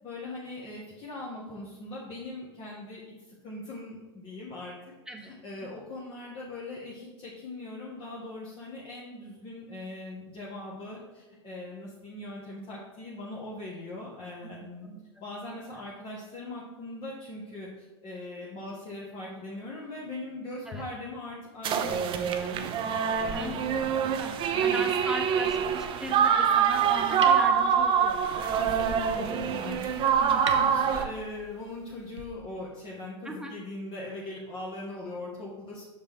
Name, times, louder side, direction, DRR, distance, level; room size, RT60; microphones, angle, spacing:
voice 1, 0.0-3.0 3.3-14.9 15.2-24.2 24.5-24.9 28.6-35.8, left 2 dB, 35° left, -5 dB, 1.4 m, -40 dB
sound 1, 21.6-31.0, right 7 dB, 35° right, 0.6 m, -25 dB
voice 2, 23.3-24.3 24.6-28.2 30.2-30.4 33.2-33.5, right 1 dB, 5° right, 2 dB, 1.1 m, -37 dB
sound 2, 24.2-32.2, right 5 dB, 90° right, 0.7 m, -45 dB
6.1 x 5.1 x 3.6 m, 1.2 s
hypercardioid pair, 95°, 14 cm